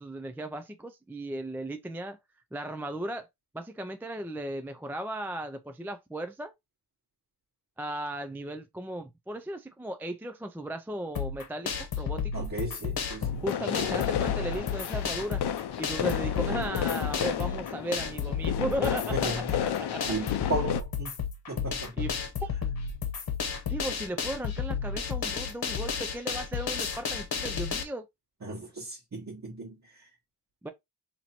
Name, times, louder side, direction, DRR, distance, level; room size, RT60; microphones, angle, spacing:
voice 1, 0.0-2.2 2.5-3.3 3.5-6.5 7.8-12.4 13.4-15.4 15.8-19.4 19.8-20.1 22.0-22.1 22.4-22.5 23.7-28.1 30.6-30.7, right 1 dB, 5° right, 0.3 m, -36 dB
sound 1, 11.1-27.8, left 6 dB, 65° left, 1.0 m, -32 dB
voice 2, 12.3-14.1 16.0-16.7 19.1-19.7 20.1-21.1 21.5-22.1 28.4-30.1, right 2 dB, 45° right, 1.4 m, -36 dB
sound 2, 13.2-20.8, left 10 dB, 90° left, 0.5 m, -32 dB
2.8 x 2.6 x 4.3 m
cardioid pair, 70°, 39 cm